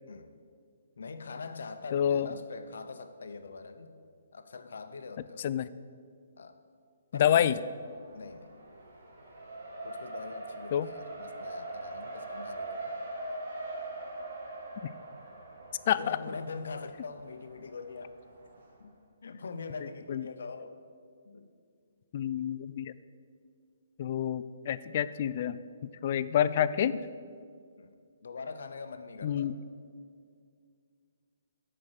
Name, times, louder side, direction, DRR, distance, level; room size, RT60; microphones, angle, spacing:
voice 1, 1.0-4.0 4.3-5.5 6.4-6.6 7.1-7.5 8.1-8.5 9.8-12.9 15.9-18.2 18.8-19.0 19.2-20.7 21.3-21.5 27.8-28.0 28.2-29.6, left 4 dB, 75° left, 9 dB, 0.7 m, -43 dB
voice 2, 1.9-2.3 5.4-5.7 7.1-7.5 10.7-10.9 15.9-16.2 20.1-20.3 22.1-23.0 24.0-25.6 26.0-27.0 29.2-29.6, left 10 dB, 45° left, 15 dB, 0.3 m, -28 dB
Race car auto racing, 7.7-18.7, right 2 dB, 65° right, 2.0 m, -42 dB
8.6 x 5.0 x 6.4 m, 2.2 s
hypercardioid pair, 145°, 0 cm